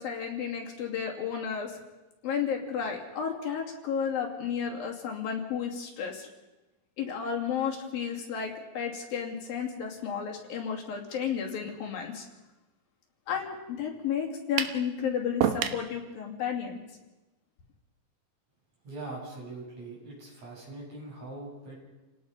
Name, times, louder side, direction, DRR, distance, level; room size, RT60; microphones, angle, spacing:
voice 1, 0.0-1.8 2.2-6.3 7.0-12.3 13.3-16.8, left 7 dB, 80° left, 0 dB, 4.5 m, -32 dB
sound 1, 14.6-14.8 15.4-15.9, right 9 dB, 70° right, 2.5 m, -27 dB
voice 2, 18.9-21.8, right 2 dB, 50° right, -3 dB, 8.8 m, -42 dB
29.5 x 18.0 x 5.5 m, 1.1 s
omnidirectional pair, 4.1 m